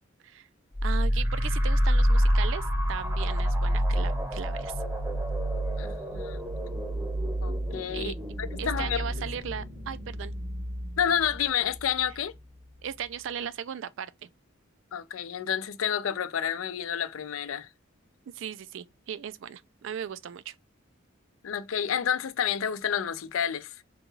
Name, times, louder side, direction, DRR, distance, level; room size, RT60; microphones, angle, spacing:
sound 1, 0.7-12.1, equal, 15° right, 0.7 m, -28 dB
voice 1, 0.8-4.7 7.9-8.1 8.6-10.3 12.8-14.3 18.3-20.5, right 8 dB, 65° right, 0.3 m, -37 dB
voice 2, 5.8-6.4 7.4-9.0 11.0-12.3 14.9-17.7 21.4-23.8, left 8 dB, 85° left, 0.5 m, -30 dB
3.7 x 2.3 x 3.0 m
head